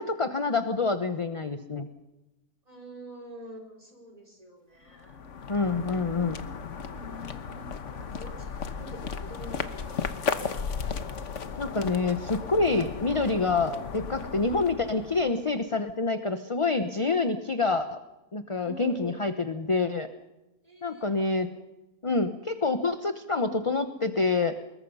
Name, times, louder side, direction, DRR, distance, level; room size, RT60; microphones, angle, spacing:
voice 1, 0.0-1.9 5.5-6.4 11.6-18.0 18.3-20.1 20.8-21.5 22.0-24.5, left 3 dB, 25° left, 9 dB, 0.7 m, -27 dB
voice 2, 2.7-5.2 6.9-10.7 18.6-19.3 20.6-21.4, right 1 dB, 25° right, 2 dB, 4.7 m, -46 dB
sound 1, 4.9-15.6, left 6 dB, 55° left, 1.4 m, -35 dB
25.5 x 21.5 x 5.5 m, 1.0 s
omnidirectional pair, 1.7 m